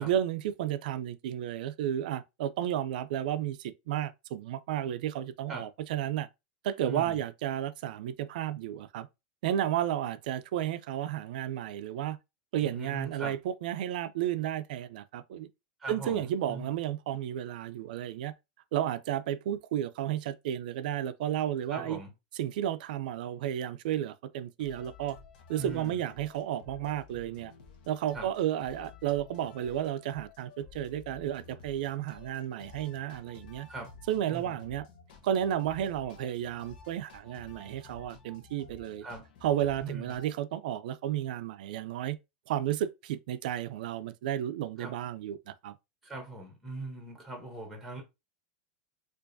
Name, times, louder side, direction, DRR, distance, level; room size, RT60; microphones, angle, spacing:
voice 1, 0.0-6.3 6.6-9.1 9.4-12.2 12.5-15.5 15.9-18.3 18.7-22.0 22.3-25.2 25.5-27.5 27.9-33.7 34.1-34.9 35.2-39.1 39.4-42.2 42.5-45.7, right 11 dB, 65° right, 0.4 m, -32 dB
voice 2, 6.9-7.2 12.6-13.3 15.8-16.7 21.7-22.1 25.6-26.0 28.1-28.3 33.7-33.9 34.3-34.6 39.0-39.3 39.8-40.1 44.8-44.9 46.0-48.0, right 3 dB, ahead, 0.9 m, -40 dB
sound 1, 24.6-40.4, left 5 dB, 65° left, 0.9 m, -53 dB
4.6 x 2.5 x 2.6 m
supercardioid pair, 165°, 5 cm